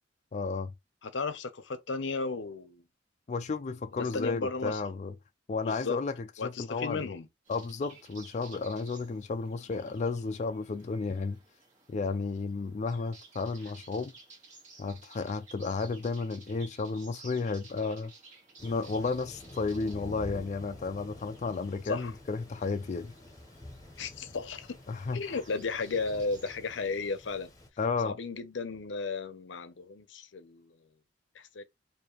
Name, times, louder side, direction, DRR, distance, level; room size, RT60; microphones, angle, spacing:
voice 1, 0.3-0.7 3.3-5.1 5.5-6.1 6.4-7.1 7.5-11.4 11.9-14.1 14.8-18.1 18.6-23.1 24.9-25.4 27.8-28.2, left 4 dB, 40° left, 0.4 m, -33 dB
voice 2, 1.0-2.8 3.9-4.8 5.6-6.0 6.4-7.3 21.8-22.1 24.0-24.8 25.1-27.5 28.0-30.7 31.3-31.6, left 4 dB, 85° left, 0.7 m, -34 dB
sound 1, 7.4-26.6, right 3 dB, 40° right, 1.9 m, -56 dB
Thunder, 18.6-27.7, left 1 dB, 20° left, 1.0 m, -48 dB
4.7 x 2.7 x 3.0 m
head